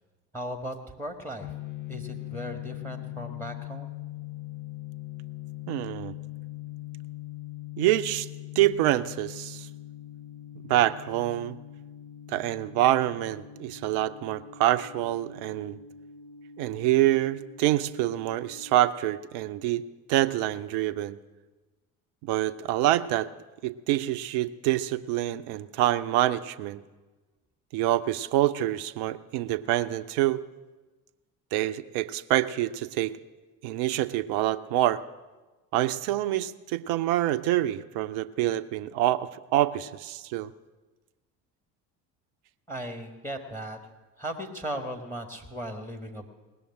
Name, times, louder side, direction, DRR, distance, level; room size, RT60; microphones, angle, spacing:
voice 1, 0.3-1.5 1.9-4.0 42.7-43.8 44.2-46.3, right 1 dB, 5° left, 7 dB, 1.9 m, -37 dB
sound 1, 1.4-18.9, left 13 dB, 40° left, 1.2 m, -42 dB
voice 2, 5.7-6.1 7.8-8.3 8.5-9.7 10.7-11.6 12.3-15.8 16.6-19.8 20.1-21.2 22.2-23.3 23.6-26.8 27.7-30.4 31.5-33.2 33.6-35.0 35.7-40.5, right 14 dB, 55° right, 13 dB, 0.8 m, -26 dB
18.5 x 7.1 x 9.9 m, 1.2 s
figure-of-eight pair, 55°, 48 cm